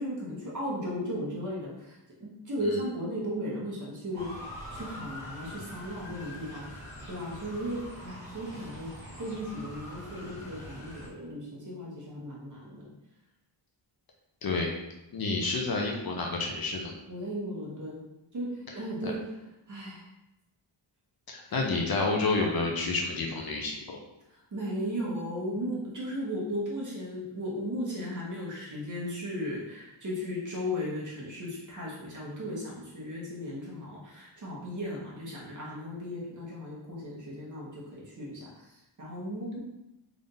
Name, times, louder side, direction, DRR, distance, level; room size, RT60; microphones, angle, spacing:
voice 1, 0.0-6.7 7.0-8.9 9.2-12.9 17.1-18.0 18.3-19.2 19.7-20.1 21.5-21.6 24.3-39.6, equal, 40° right, -5 dB, 1.2 m, -36 dB
Motor vehicle (road) / Siren, 4.1-11.1, equal, 5° left, 1.2 m, -44 dB
voice 2, 14.4-14.8 15.1-16.9 19.0-19.1 21.3-24.0, left 3 dB, 50° left, 1 dB, 0.6 m, -29 dB
3.5 x 2.6 x 3.8 m, 0.91 s
wide cardioid pair, 160°, 47 cm